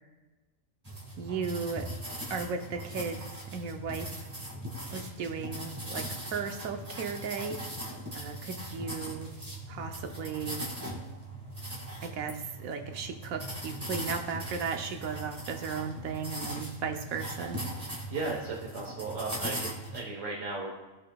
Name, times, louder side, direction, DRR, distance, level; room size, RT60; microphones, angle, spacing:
sound 1, 0.8-20.0, right 1 dB, 15° right, 1.6 m, -40 dB
voice 1, 1.2-1.9 2.3-3.2 3.5-4.1 4.9-7.6 8.1-9.3 9.7-10.6 12.0-17.6, right 5 dB, 85° right, 5 dB, 1.2 m, -36 dB
voice 2, 17.8-20.8, right 3 dB, 70° right, -2 dB, 1.5 m, -36 dB
15.5 x 5.7 x 2.3 m, 1.2 s
omnidirectional pair, 1.4 m